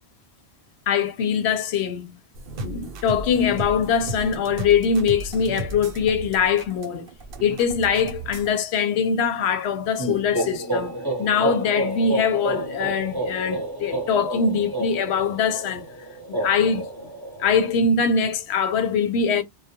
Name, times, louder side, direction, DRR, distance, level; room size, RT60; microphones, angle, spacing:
voice 1, 0.9-2.2 2.6-7.1 7.4-15.8 16.3-16.9 17.4-19.4, left 6 dB, 90° left, 0.9 m, -22 dB
sound 1, 2.3-8.5, right 2 dB, 65° right, 0.7 m, -35 dB
sound 2, 10.0-17.7, right 1 dB, 25° right, 0.7 m, -30 dB
2.2 x 2.1 x 2.8 m
omnidirectional pair, 1.1 m